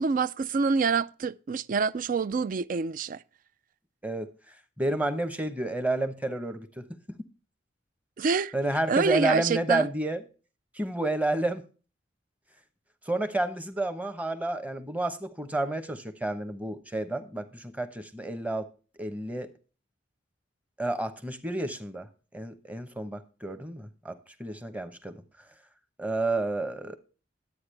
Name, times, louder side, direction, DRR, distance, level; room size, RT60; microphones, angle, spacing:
voice 1, 0.0-3.2 8.2-8.5 8.9-9.9, right 5 dB, 45° right, 0.4 m, -26 dB
voice 2, 4.8-6.9 8.5-10.2 10.7-11.6 13.1-18.7 19.0-19.5 20.8-22.1 22.3-25.2 26.0-27.0, right 2 dB, 10° right, 0.9 m, -30 dB
11.5 x 8.8 x 3.3 m
head